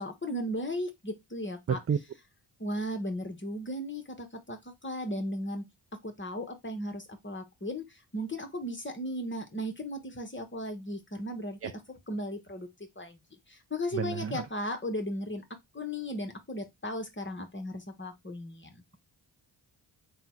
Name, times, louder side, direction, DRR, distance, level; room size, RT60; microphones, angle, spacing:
voice 1, 0.0-1.8 2.6-5.6 6.0-12.7 13.0-13.2 13.5-15.4 15.7-18.8, equal, 25° left, 1.1 m, -36 dB
voice 2, 1.7-2.0 11.6-11.7 13.9-14.4, right 7 dB, 30° right, 0.5 m, -30 dB
3.7 x 2.3 x 4.5 m
cardioid pair, 50°, 47 cm